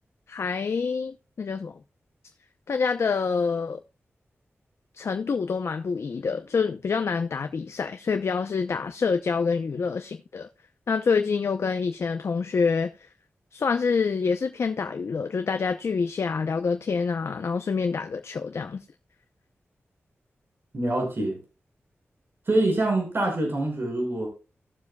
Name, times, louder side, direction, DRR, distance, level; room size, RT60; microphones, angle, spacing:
voice 1, 0.3-1.8 2.7-3.8 4.9-10.5 10.9-13.1 13.5-18.8, left 5 dB, 70° left, 0.6 m, -27 dB
voice 2, 20.7-21.4 22.5-24.3, right 2 dB, 50° right, 5.6 m, -25 dB
17.5 x 7.2 x 2.3 m
wide cardioid pair, 85°, 5 cm